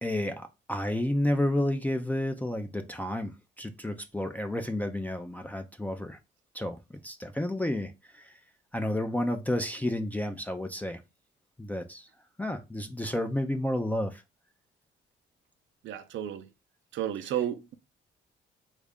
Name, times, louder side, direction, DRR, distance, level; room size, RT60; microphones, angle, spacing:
voice 1, 0.0-6.2 6.5-6.8 7.0-8.4 8.7-11.0 11.6-12.1 12.4-14.2, left 1 dB, 10° left, 0.4 m, -31 dB
voice 2, 15.8-16.5 16.9-17.7, right 10 dB, 70° right, 0.5 m, -32 dB
3.1 x 2.4 x 3.5 m
cardioid pair, 90°, 20 cm